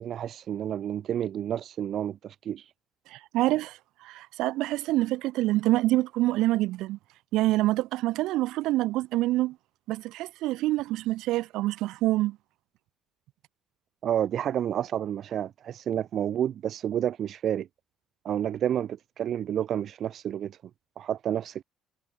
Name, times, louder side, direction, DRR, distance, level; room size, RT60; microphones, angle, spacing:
voice 1, 0.0-2.7 14.0-17.7 18.2-20.6 21.0-21.6, right 10 dB, 45° right, 1.3 m, -30 dB
voice 2, 3.1-7.0 7.3-9.6 9.9-12.4, right 17 dB, 75° right, 2.4 m, -26 dB
cardioid pair, 155°, 0 cm